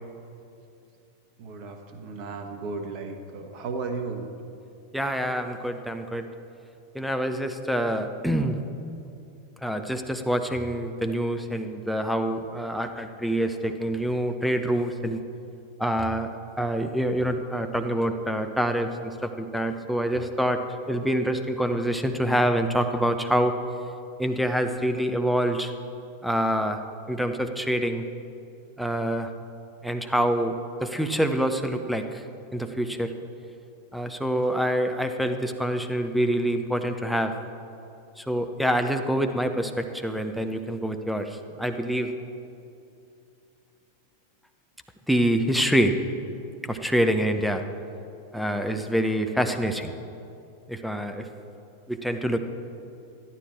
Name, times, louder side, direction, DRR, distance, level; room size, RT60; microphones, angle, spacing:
voice 1, 1.4-4.3, right 4 dB, 40° right, 5 dB, 1.3 m, -34 dB
voice 2, 4.9-6.2 6.9-8.6 9.6-15.2 15.8-16.3 16.6-20.6 20.9-23.5 24.2-25.7 26.2-26.8 27.1-28.0 28.8-29.3 29.8-32.2 32.5-33.1 33.9-37.3 38.2-42.1 45.1-46.0 46.6-47.6 48.3-49.9 50.7-51.3 51.9-52.4, equal, ahead, 7 dB, 0.8 m, -26 dB
13.0 x 11.5 x 4.5 m, 2.6 s
figure-of-eight pair, 90°, 0 cm